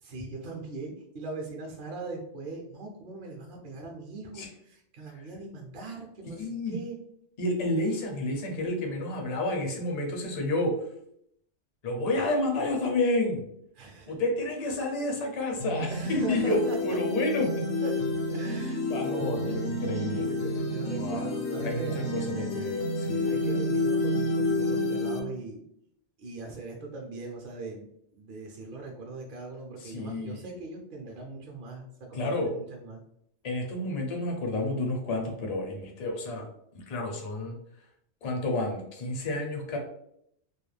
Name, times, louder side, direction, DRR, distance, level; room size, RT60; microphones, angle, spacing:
voice 1, 0.0-7.0 13.8-14.1 15.9-16.8 17.8-17.9 18.3-19.7 20.1-22.6 23.3-25.6 26.2-27.9 28.1-33.0, right 3 dB, 55° right, 0 dB, 0.6 m, -40 dB
voice 2, 6.3-6.8 7.4-10.7 11.8-13.4 14.1-17.7 18.9-20.3 21.0-21.3 21.6-23.4 29.8-30.5 32.1-32.5 33.4-36.5 36.7-37.6 38.2-39.8, left 2 dB, 45° left, 1 dB, 0.5 m, -30 dB
sound 1, 15.6-25.2, left 2 dB, 85° left, 0.9 m, -29 dB
2.4 x 2.1 x 3.1 m, 0.72 s
omnidirectional pair, 1.2 m